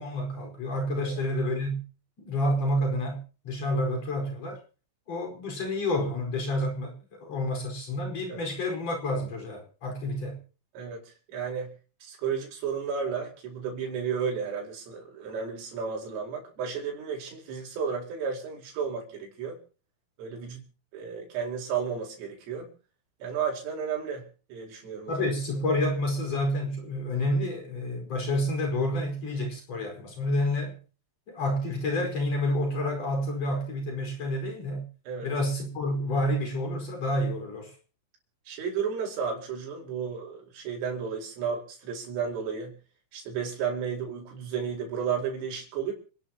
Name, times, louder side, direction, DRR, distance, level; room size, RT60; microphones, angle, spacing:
voice 1, 0.0-1.8 2.2-4.6 5.1-10.4 25.1-30.8 31.3-34.9 35.2-37.7, left 1 dB, 30° left, 5.6 m, -29 dB
voice 2, 10.8-11.7 12.0-19.6 20.2-20.6 20.9-22.7 23.2-25.3 35.1-35.3 38.5-42.8 43.1-45.9, right 6 dB, 70° right, 7.0 m, -33 dB
29.5 x 11.0 x 3.0 m
omnidirectional pair, 6.0 m